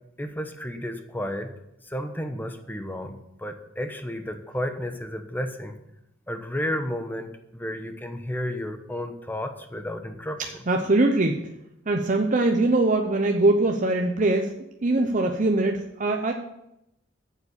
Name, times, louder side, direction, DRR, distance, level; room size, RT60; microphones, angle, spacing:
voice 1, 0.2-1.5 1.8-5.8 6.3-10.4, left 1 dB, 10° left, 7 dB, 1.0 m, -32 dB
voice 2, 10.7-11.5 11.9-14.5 14.8-16.3, right 2 dB, 40° right, 3 dB, 0.7 m, -22 dB
8.5 x 7.3 x 7.0 m, 0.83 s
head